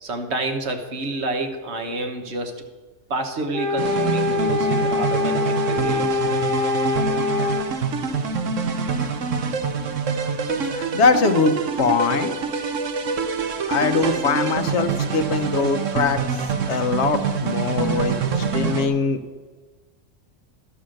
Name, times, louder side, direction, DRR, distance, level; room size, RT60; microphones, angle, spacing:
voice 1, 0.0-2.6 3.1-6.4, right 2 dB, 60° right, 5 dB, 1.3 m, -29 dB
sound 1, 3.5-7.7, left 4 dB, 5° left, 1.0 m, -24 dB
sound 2, 3.8-18.9, right 5 dB, 75° right, 1.2 m, -25 dB
voice 2, 10.7-12.3 13.7-16.2 16.7-19.2, left 4 dB, 65° left, 9 dB, 0.9 m, -22 dB
12.5 x 5.7 x 6.3 m, 1.3 s
omnidirectional pair, 1.3 m